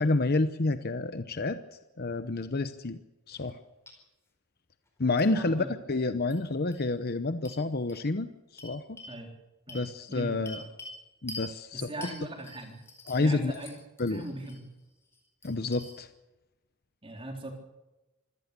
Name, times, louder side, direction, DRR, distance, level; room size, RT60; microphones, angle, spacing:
voice 1, 0.0-1.6 2.0-3.0 3.3-3.6 5.0-9.0 9.7-10.6 11.2-11.9 13.1-13.6 14.0-14.2 15.4-16.1, left 2 dB, 45° left, 10 dB, 0.8 m, -29 dB
sound 1, 3.3-3.6 3.9-4.0 5.2-5.3 6.3-6.4 6.7-6.8 7.4-7.6 7.9-8.0 8.6-9.1 9.7-11.0 11.3-11.5 12.0-13.3 13.5-14.6 15.0-15.9, left 2 dB, 10° left, 4.6 m, -45 dB
voice 2, 5.3-5.7 9.1-9.3 9.7-10.6 11.7-12.8 13.2-13.7 14.1-14.7 17.0-17.5, right 1 dB, 25° right, 2 dB, 3.6 m, -40 dB
25.5 x 17.0 x 6.8 m, 1.0 s
head